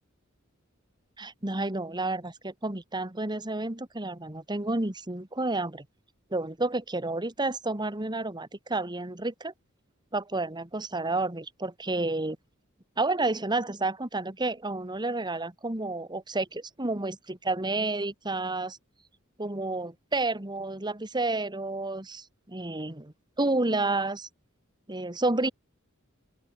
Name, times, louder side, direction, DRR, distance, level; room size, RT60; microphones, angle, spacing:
voice 1, 1.2-5.9 6.3-9.5 10.1-12.4 13.0-18.8 19.4-24.3 24.9-25.5, right 2 dB, 20° right, 1.9 m, -30 dB
open air
head